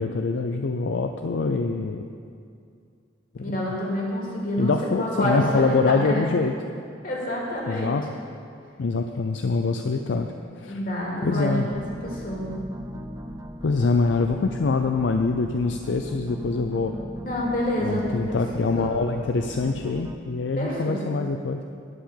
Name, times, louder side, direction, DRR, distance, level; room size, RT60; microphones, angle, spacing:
voice 1, 0.0-2.0 3.3-3.6 4.6-6.5 7.7-8.1 8.8-10.8 11.2-11.7 13.6-16.9 17.8-21.6, left 4 dB, 75° left, 5 dB, 0.5 m, -25 dB
voice 2, 3.4-6.2 7.0-7.9 10.6-12.5 17.2-18.0 18.7-18.9 20.6-21.0, equal, 50° left, -3 dB, 2.5 m, -28 dB
sound 1, 11.7-20.2, equal, 20° right, 0.6 m, -38 dB
11.0 x 5.8 x 8.4 m, 2.4 s
head